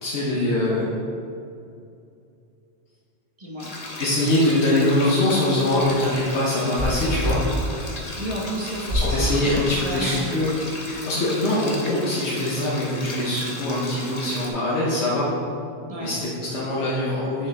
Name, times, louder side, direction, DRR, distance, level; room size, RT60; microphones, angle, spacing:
voice 1, 0.0-0.9 4.0-7.4 8.9-10.5 10.8-15.3 16.0-17.5, left 1 dB, 80° left, -7 dB, 1.3 m, -23 dB
voice 2, 3.4-3.7 8.2-10.3 11.2-11.3 15.9-16.1, equal, 35° right, -4 dB, 1.4 m, -32 dB
sound 1, 3.6-14.5, left 1 dB, 40° left, 1.0 m, -36 dB
sound 2, 5.5-7.5 8.8-9.1 9.8-10.4, equal, 85° right, 1.9 m, -27 dB
6.7 x 6.3 x 3.4 m, 2.5 s
omnidirectional pair, 1.1 m